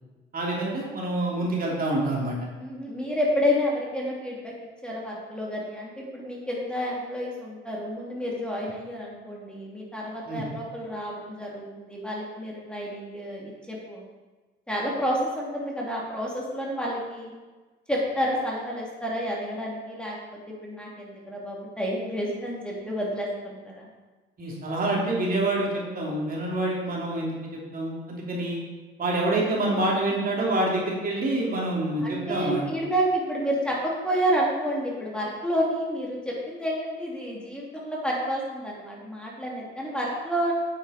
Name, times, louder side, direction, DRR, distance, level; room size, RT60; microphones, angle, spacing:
voice 1, 0.3-2.4 10.3-10.4 24.4-27.4 27.7-28.6 29.0-32.6, right 2 dB, 45° right, -3 dB, 3.0 m, -27 dB
voice 2, 2.6-4.5 4.8-14.1 14.7-17.3 17.9-20.2 20.5-23.9 32.0-40.5, equal, 5° left, -4 dB, 3.0 m, -29 dB
9.0 x 8.8 x 4.4 m, 1.3 s
cardioid pair, 90°, 20 cm